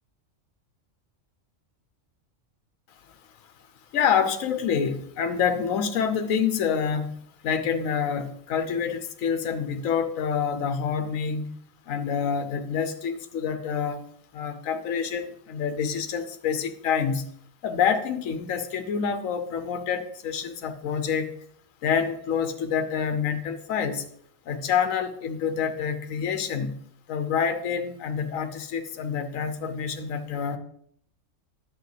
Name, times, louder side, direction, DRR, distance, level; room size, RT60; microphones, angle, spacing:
voice 1, 3.9-7.2 7.4-11.5 11.9-14.0 14.3-17.2 17.6-21.3 21.8-24.1 24.5-26.8 27.1-30.6, left 7 dB, 90° left, 8 dB, 1.1 m, -27 dB
10.5 x 7.6 x 3.3 m, 0.66 s
omnidirectional pair, 1.4 m